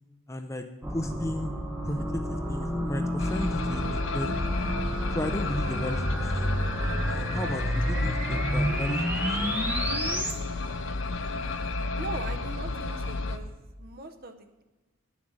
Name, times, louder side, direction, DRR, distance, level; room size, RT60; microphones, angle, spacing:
voice 1, 0.3-1.5 1.8-3.9 4.1-4.4 5.1-6.5 7.1-9.6, left 1 dB, 15° left, 6 dB, 0.5 m, -34 dB
sound 1, 0.8-10.3, equal, 10° right, 0.9 m, -30 dB
sound 2, 3.2-13.4, left 3 dB, 55° left, 0.6 m, -32 dB
voice 2, 11.9-14.6, right 3 dB, 45° right, 6 dB, 0.8 m, -40 dB
9.2 x 7.2 x 6.4 m, 1.1 s
head